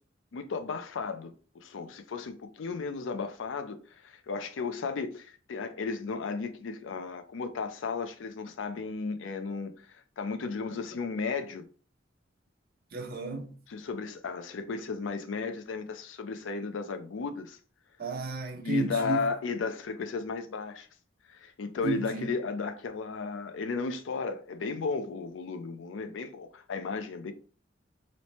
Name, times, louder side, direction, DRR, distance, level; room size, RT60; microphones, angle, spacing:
voice 1, 0.3-3.8 4.0-11.7 13.7-17.6 18.6-20.9 21.3-27.3, left 4 dB, 85° left, 0.5 m, -34 dB
voice 2, 12.9-13.5 18.0-19.2 21.8-22.3, right 2 dB, 55° right, 0.6 m, -32 dB
3.1 x 2.1 x 4.1 m
head